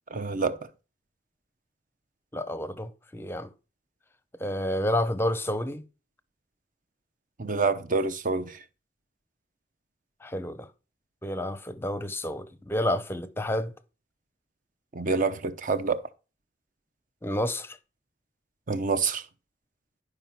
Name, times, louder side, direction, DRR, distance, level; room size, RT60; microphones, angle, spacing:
voice 1, 0.1-0.6 7.4-8.6 14.9-16.0 18.7-19.2, right 4 dB, 45° right, 0.7 m, -27 dB
voice 2, 2.3-3.5 4.4-5.8 10.2-10.7 11.2-13.7 17.2-17.8, left 1 dB, 15° left, 0.6 m, -30 dB
11.0 x 5.0 x 5.8 m
head